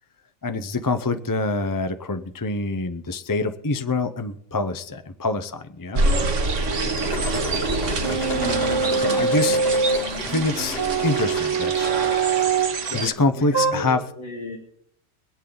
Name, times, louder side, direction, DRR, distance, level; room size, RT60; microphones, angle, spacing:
voice 1, 0.4-6.0 8.1-8.3 8.9-9.6 10.2-11.9 12.9-14.0, left 3 dB, 25° left, 9 dB, 0.4 m, -25 dB
sound 1, 6.0-13.1, right 2 dB, 65° right, 1.7 m, -26 dB
sound 2, 6.6-12.5, left 2 dB, 50° left, 1.9 m, -34 dB
voice 2, 6.7-7.3 12.8-13.1 13.4-14.6, left 2 dB, 85° left, -1 dB, 2.5 m, -36 dB
sound 3, 8.0-10.1 10.8-12.8 13.5-13.7, right 5 dB, 20° right, 0.8 m, -23 dB
25.5 x 8.5 x 3.9 m, 0.68 s
omnidirectional pair, 1.4 m